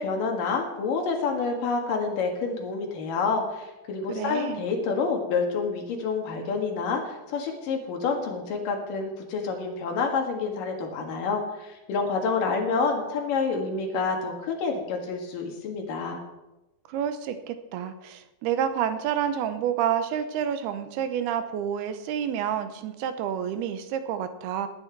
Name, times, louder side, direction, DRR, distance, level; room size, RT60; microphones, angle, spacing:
voice 1, 0.0-16.2, left 4 dB, 65° left, 2 dB, 3.3 m, -28 dB
voice 2, 4.1-4.6 16.9-24.7, right 9 dB, 90° right, 10 dB, 2.9 m, -29 dB
18.0 x 9.7 x 4.7 m, 1.0 s
omnidirectional pair, 4.4 m